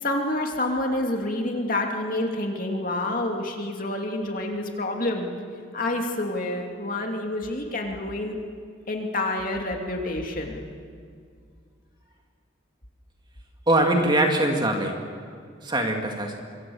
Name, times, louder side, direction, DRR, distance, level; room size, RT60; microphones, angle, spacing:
voice 1, 0.0-5.3 5.7-8.4 8.9-10.6, left 1 dB, 40° left, 2 dB, 2.7 m, -28 dB
voice 2, 13.7-14.9 15.6-16.3, right 1 dB, 20° right, 2 dB, 2.3 m, -22 dB
25.5 x 25.0 x 7.2 m, 2.2 s
head